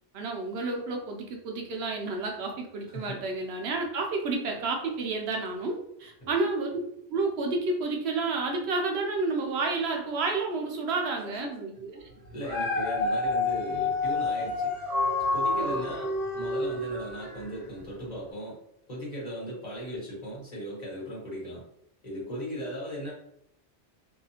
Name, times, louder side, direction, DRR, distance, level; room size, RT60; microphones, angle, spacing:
voice 1, 0.1-6.8 7.1-12.0 15.5-16.0, right 3 dB, 80° right, 2 dB, 0.9 m, -30 dB
voice 2, 2.9-3.2 6.2-6.3 11.4-11.6 12.3-14.7 15.3-18.6 18.9-21.6 22.0-23.1, equal, 40° left, -6 dB, 1.3 m, -37 dB
Dog, 12.2-17.6 18.1-18.2, left 3 dB, 60° right, 1.1 m, -29 dB
2.7 x 2.3 x 2.8 m, 0.74 s
omnidirectional pair, 1.1 m